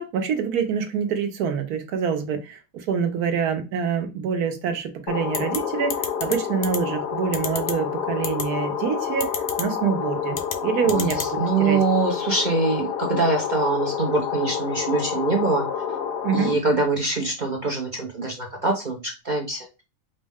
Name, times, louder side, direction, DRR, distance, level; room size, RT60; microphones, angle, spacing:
voice 1, 0.0-9.3 9.6-11.2 11.6-11.8 16.2-16.5, right 6 dB, 75° right, 1.2 m, -26 dB
sound 1, 5.1-16.5, left 7 dB, 85° left, 1.3 m, -29 dB
sound 2, 5.3-5.6 5.9-6.3 6.6-6.8 7.3-7.7 8.2-8.4 9.2-9.6 10.3-10.6 10.9-11.3, left 6 dB, 55° left, 0.8 m, -28 dB
voice 2, 10.9-15.7 16.3-19.0 19.2-19.7, right 3 dB, 50° right, 0.5 m, -24 dB
5.1 x 2.1 x 3.5 m
omnidirectional pair, 1.7 m